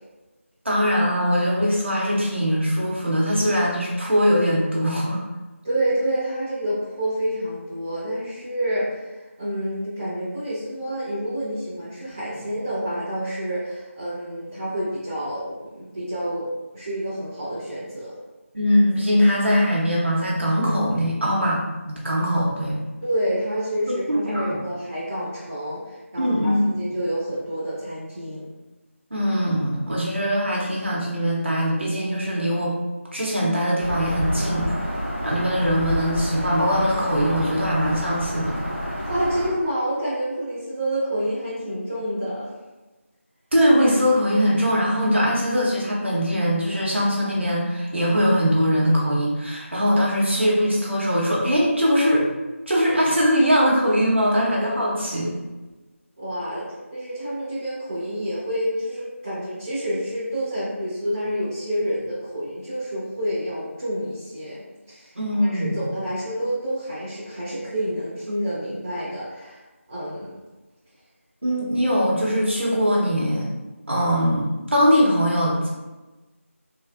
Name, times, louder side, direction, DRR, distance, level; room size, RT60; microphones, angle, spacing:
voice 1, 0.6-5.2 18.5-22.8 24.1-24.4 26.2-26.6 29.1-32.7 33.1-34.8 35.2-38.6 43.5-52.3 52.7-55.3 65.1-65.8 71.4-73.5 73.9-75.7, equal, 55° right, -4 dB, 0.9 m, -21 dB
voice 2, 5.6-18.1 23.0-28.5 39.1-42.5 56.2-64.6 64.9-65.1 65.4-69.6 69.9-70.3, equal, 10° right, -14 dB, 0.4 m, -28 dB
Bird vocalization bird call bird song, 33.8-39.5, equal, 20° left, 1.4 m, -29 dB
3.3 x 2.3 x 2.4 m, 1.1 s
figure-of-eight pair, 170°, 7 cm